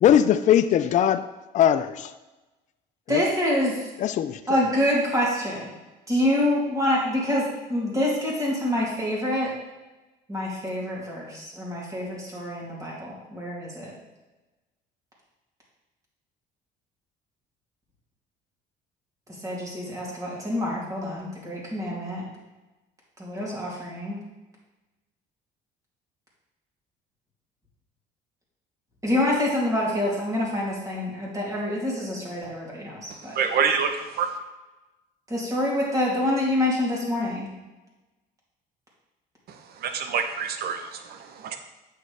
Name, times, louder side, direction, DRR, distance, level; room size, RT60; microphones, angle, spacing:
voice 1, 0.0-1.2 1.5-2.1 3.1-3.2 4.0-4.4, left 10 dB, 45° left, 0.4 m, -20 dB
voice 2, 3.1-3.8 4.5-5.7 6.1-9.5 10.3-13.9 19.4-22.2 23.2-24.2 29.0-33.4 35.3-37.5, left 1 dB, 20° right, 2.8 m, -26 dB
voice 3, 33.3-34.3 39.8-41.6, right 6 dB, 60° right, 0.9 m, -26 dB
8.4 x 6.5 x 3.4 m
cardioid pair, 115°, 18 cm